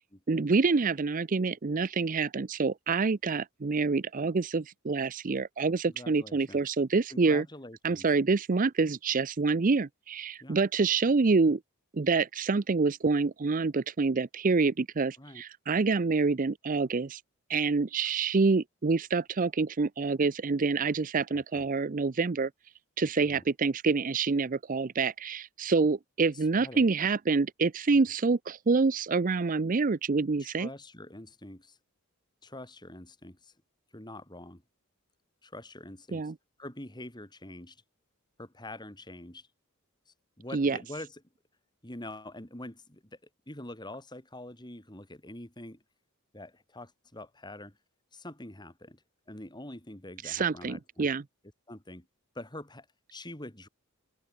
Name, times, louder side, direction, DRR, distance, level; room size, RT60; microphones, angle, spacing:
voice 1, 0.3-7.4 7.8-11.6 11.9-17.2 17.5-22.5 23.0-30.7 36.1-36.3 40.5-40.8 50.2-51.2, right 4 dB, 35° right, 0.5 m, -27 dB
voice 2, 5.9-6.6 7.1-8.1 10.4-10.6 15.2-15.4 21.3-21.6 23.3-23.4 26.5-26.8 30.6-31.8 32.4-33.5 33.9-34.6 35.4-36.3 36.6-37.8 38.4-39.5 40.4-41.1 41.8-43.0 43.5-45.8 46.3-47.8 48.1-49.0 49.3-51.1 51.7-52.1 52.4-52.9 53.1-53.7, left 1 dB, 20° left, 3.6 m, -45 dB
open air
head